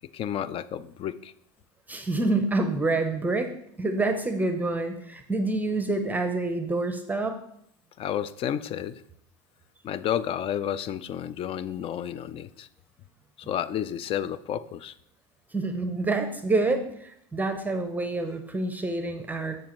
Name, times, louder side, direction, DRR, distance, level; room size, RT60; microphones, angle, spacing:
voice 1, 0.1-1.3 8.0-9.0 9.8-12.7 13.5-14.9, left 10 dB, 40° left, 16 dB, 0.4 m, -31 dB
voice 2, 1.9-3.5 3.8-7.4 15.5-19.6, right 2 dB, 10° right, 7 dB, 0.7 m, -27 dB
7.4 x 7.1 x 3.0 m, 0.73 s
hypercardioid pair, 95°, 15 cm